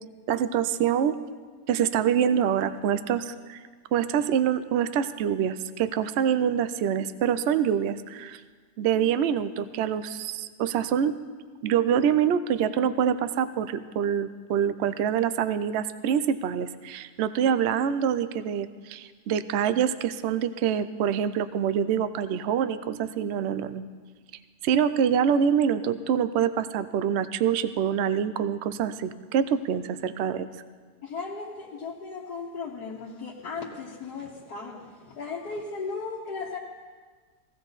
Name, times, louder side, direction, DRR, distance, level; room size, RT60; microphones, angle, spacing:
voice 1, 0.3-1.2 1.7-3.6 3.9-8.4 8.8-11.2 11.6-23.8 24.6-30.5, right 8 dB, 65° right, 13 dB, 0.7 m, -25 dB
voice 2, 31.0-36.6, left 4 dB, 75° left, -5 dB, 1.8 m, -36 dB
17.5 x 16.0 x 4.0 m, 1.5 s
omnidirectional pair, 1.7 m